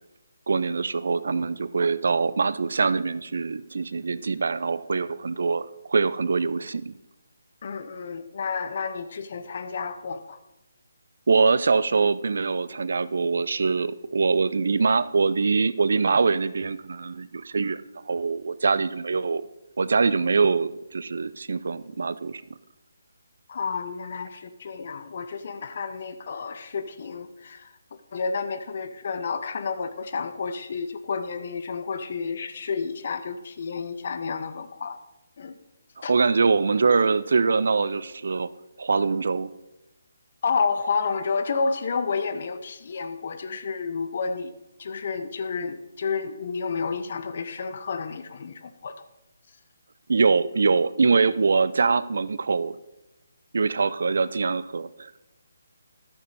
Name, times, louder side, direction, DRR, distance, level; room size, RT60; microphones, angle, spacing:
voice 1, 0.5-6.9 11.3-19.4 19.8-22.4 36.1-38.5 38.8-39.5 50.1-52.8 53.5-55.2, right 4 dB, 65° right, 17 dB, 0.4 m, -23 dB
voice 2, 7.6-10.4 23.5-27.7 28.1-35.0 35.4-35.5 36.0-36.1 40.4-44.5 44.8-49.0, left 5 dB, 50° left, 10 dB, 0.8 m, -30 dB
12.5 x 6.9 x 4.0 m, 0.95 s
figure-of-eight pair, 145°, 0 cm